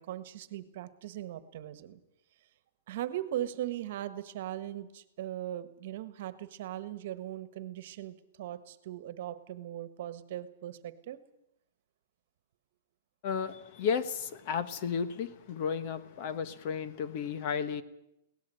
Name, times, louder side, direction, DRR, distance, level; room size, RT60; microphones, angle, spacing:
voice 1, 0.0-2.0 2.9-11.2, right 12 dB, 45° right, 12 dB, 1.5 m, -39 dB
voice 2, 13.2-17.8, left 6 dB, 35° left, 12 dB, 1.2 m, -33 dB
22.5 x 18.5 x 7.8 m, 0.85 s
hypercardioid pair, 170°, 0 cm